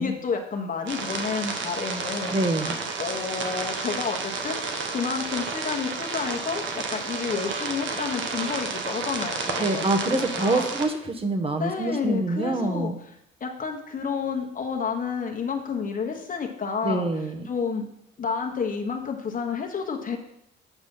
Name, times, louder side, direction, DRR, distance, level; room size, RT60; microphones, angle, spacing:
voice 1, 0.0-2.4 3.0-4.6 4.9-10.6 11.6-12.9 13.4-17.1 17.5-17.8 18.2-20.2, left 5 dB, 45° left, 2 dB, 1.2 m, -30 dB
sound 1, 0.9-10.8, right 4 dB, 70° right, 1.3 m, -31 dB
voice 2, 2.3-2.7 9.6-12.9 16.8-17.4, right 2 dB, 30° right, 5 dB, 1.2 m, -26 dB
8.4 x 5.3 x 5.4 m, 0.76 s
cardioid pair, 90°, 20 cm